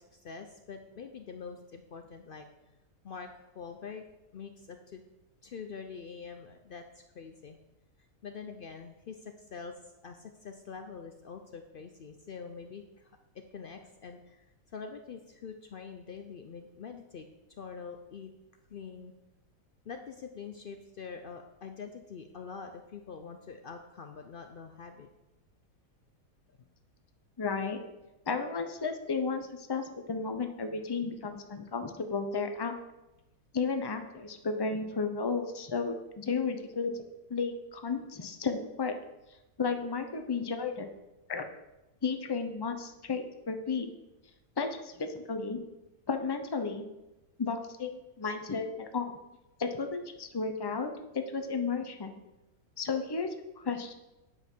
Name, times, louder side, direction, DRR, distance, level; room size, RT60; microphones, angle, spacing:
voice 1, 0.0-2.5 3.0-4.0 4.3-5.0 5.4-7.6 8.2-9.7 10.0-13.1 13.5-17.3 17.6-18.3 18.7-19.1 19.8-25.1, left 5 dB, 90° left, 6 dB, 0.4 m, -45 dB
voice 2, 27.4-27.8 28.3-32.7 33.5-37.0 37.3-38.9 39.6-40.9 41.3-41.4 42.0-43.9 44.6-45.6 46.1-46.8 47.4-49.1 49.6-52.1 52.8-53.3 53.6-53.9, left 4 dB, 30° left, 6 dB, 0.4 m, -33 dB
9.6 x 5.4 x 6.2 m, 0.98 s
omnidirectional pair, 1.7 m